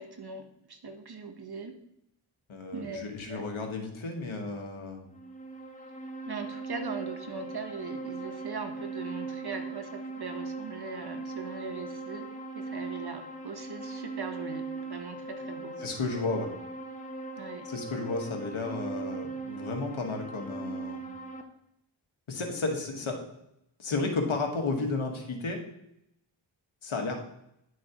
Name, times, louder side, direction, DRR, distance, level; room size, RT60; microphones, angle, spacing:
voice 1, 0.0-1.8 2.7-3.0 3.3-3.4 6.3-15.8 17.4-17.7, right 4 dB, 50° right, 7 dB, 1.1 m, -40 dB
voice 2, 2.5-5.0 15.8-16.5 17.6-21.0 22.3-23.2 23.8-25.6 26.8-27.2, left 3 dB, 75° left, 2 dB, 1.5 m, -33 dB
sound 1, 5.1-21.4, right 3 dB, 15° left, 1.0 m, -39 dB
10.0 x 6.3 x 3.0 m, 0.78 s
wide cardioid pair, 65°, 49 cm